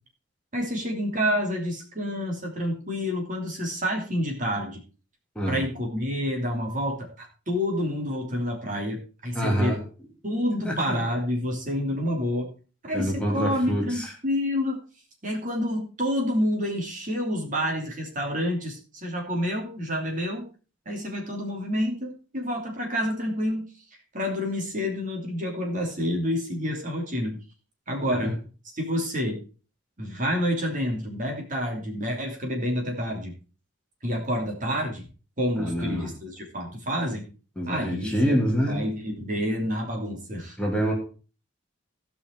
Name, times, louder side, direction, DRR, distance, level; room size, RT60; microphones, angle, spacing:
voice 1, 0.5-4.8 5.5-9.8 10.2-12.5 12.8-14.8 15.2-20.4 20.8-23.7 24.1-27.4 27.9-28.4 28.7-29.4 30.0-33.3 34.0-35.1 35.4-37.2 37.7-40.6, equal, 45° right, 1 dB, 3.0 m, -28 dB
voice 2, 9.3-9.8 10.6-11.0 12.9-14.1 28.1-28.3 35.6-36.1 37.6-38.8 40.6-40.9, equal, 5° left, -2 dB, 2.6 m, -26 dB
17.0 x 5.7 x 4.6 m, 0.36 s
head